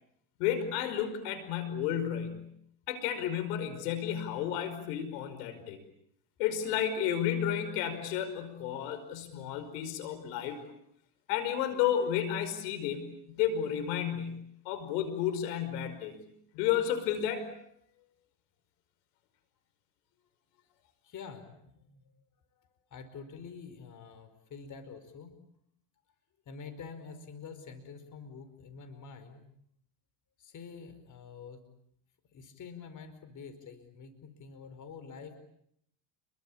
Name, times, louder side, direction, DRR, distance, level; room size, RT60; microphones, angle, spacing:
voice 1, 0.4-2.5 2.9-5.8 6.4-10.6 11.3-16.2 16.5-17.7, left 9 dB, 75° left, 11 dB, 5.3 m, -32 dB
voice 2, 21.0-22.1 22.6-25.4 26.4-29.4 30.4-31.6 32.3-35.4, left 5 dB, 40° left, 10 dB, 5.0 m, -47 dB
29.5 x 23.0 x 8.7 m, 0.72 s
supercardioid pair, 110°, 48 cm